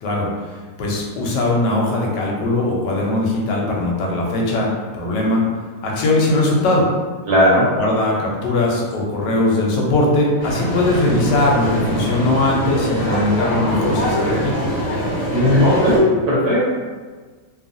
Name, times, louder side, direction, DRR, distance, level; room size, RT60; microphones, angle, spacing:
voice 1, 0.0-5.4 5.8-6.9 7.8-14.7, left 2 dB, 75° left, -2 dB, 1.2 m, -20 dB
voice 2, 7.3-7.7 15.3-16.6, left 1 dB, 65° right, -7 dB, 1.2 m, -15 dB
sound 1, 10.4-16.0, equal, 15° right, 0.7 m, -23 dB
3.0 x 2.3 x 2.5 m, 1.4 s
omnidirectional pair, 1.9 m